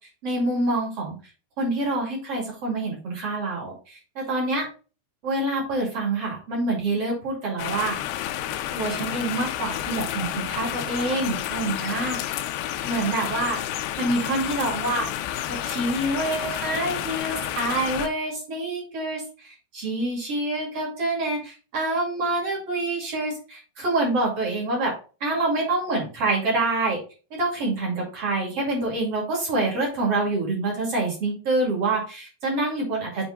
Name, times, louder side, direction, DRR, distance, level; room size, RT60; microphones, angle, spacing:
voice 1, 0.2-1.2 1.6-4.6 5.2-8.0 8.7-12.2 12.8-13.6 14.0-15.1 15.5-24.9 25.2-27.0 27.3-33.3, right 2 dB, 45° right, -2 dB, 2.3 m, -26 dB
sound 1, 7.6-18.1, left 12 dB, 85° left, 2.6 m, -30 dB
8.0 x 3.5 x 3.8 m, 0.35 s
omnidirectional pair, 5.2 m